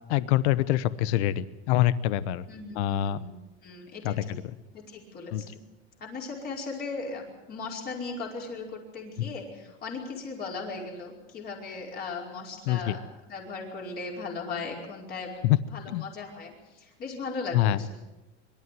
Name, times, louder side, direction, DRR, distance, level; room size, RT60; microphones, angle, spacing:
voice 1, 0.1-2.4 2.8-3.2 4.0-4.2 5.3-5.4 12.7-12.9 15.4-15.6 15.9-16.0 17.5-17.8, left 13 dB, 75° left, 16 dB, 1.0 m, -25 dB
voice 2, 2.5-4.4 4.7-5.6 6.0-15.3 15.7-18.0, left 4 dB, 30° left, -1 dB, 5.0 m, -38 dB
25.0 x 13.0 x 9.3 m, 1.1 s
supercardioid pair, 165°, 34 cm